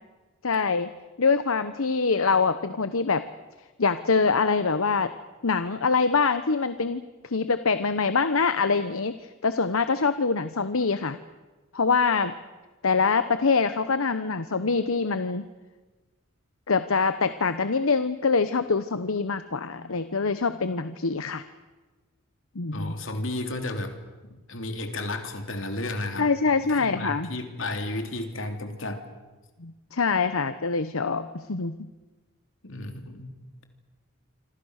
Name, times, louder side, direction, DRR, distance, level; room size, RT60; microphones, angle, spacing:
voice 1, 0.4-0.9 1.2-3.3 3.8-5.1 5.4-11.2 11.7-12.3 12.8-15.5 16.7-21.4 22.5-22.9 26.2-27.3 29.6-31.8, left 4 dB, 80° left, 11 dB, 1.0 m, -24 dB
voice 2, 22.7-24.0 24.3-26.3 26.6-29.0 32.6-33.4, left 2 dB, 65° left, 5 dB, 3.3 m, -33 dB
27.0 x 26.0 x 6.6 m, 1.2 s
head